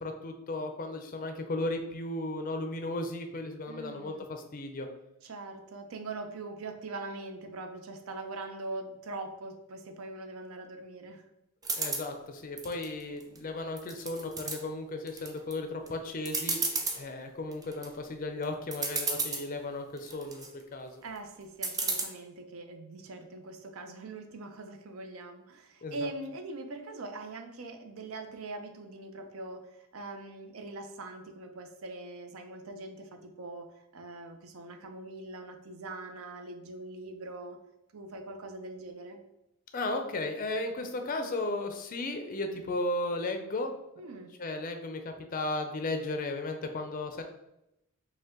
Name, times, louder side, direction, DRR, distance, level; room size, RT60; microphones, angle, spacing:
voice 1, 0.0-4.9 11.8-16.6 16.9-21.0 25.8-26.1 39.7-43.7 44.4-47.2, left 2 dB, 40° left, 5 dB, 0.4 m, -35 dB
voice 2, 3.7-4.3 5.2-11.3 21.0-33.7 33.9-37.6 37.9-39.2 44.0-44.3, right 2 dB, 70° right, 5 dB, 0.6 m, -42 dB
sound 1, 11.6-12.1 12.6-13.4 13.8-14.6 15.1-15.5 15.9-16.0 16.3-17.0 17.5-17.9 18.4-18.5 18.7-19.5 20.0-20.5 21.6-22.0, right 3 dB, 15° right, 0.4 m, -32 dB
5.2 x 2.2 x 3.6 m, 0.84 s
head